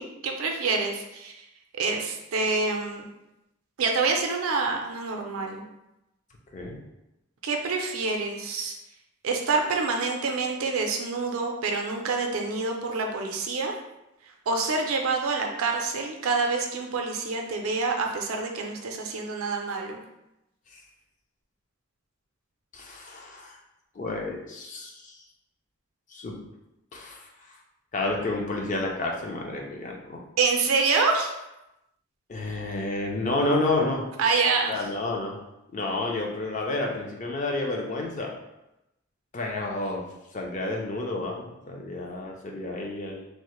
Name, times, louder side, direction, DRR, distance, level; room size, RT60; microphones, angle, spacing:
voice 1, 0.0-1.3 1.8-3.1 3.8-5.6 7.4-8.8 9.2-13.7 14.5-20.0 30.4-31.3 34.2-34.7, right 4 dB, 80° right, 2 dB, 0.5 m, -27 dB
voice 2, 22.7-23.6 24.0-25.1 26.1-26.4 26.9-27.3 27.9-30.2 32.3-34.0 34.7-35.4 35.7-38.3 39.3-40.0 40.3-43.2, left 2 dB, 35° left, 0 dB, 0.4 m, -30 dB
3.2 x 2.1 x 3.0 m, 0.92 s
head